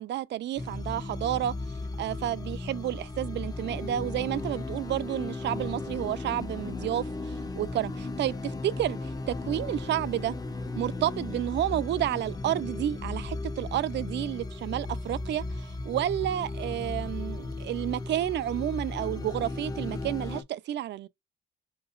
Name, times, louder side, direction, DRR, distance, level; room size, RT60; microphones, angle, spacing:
voice 1, 0.0-1.5 2.0-10.4 10.8-21.1, right 12 dB, 60° right, 0.4 m, -31 dB
sound 1, 0.6-20.4, left 2 dB, 20° left, 0.6 m, -36 dB
4.6 x 3.0 x 2.4 m
cardioid pair, 90°, 20 cm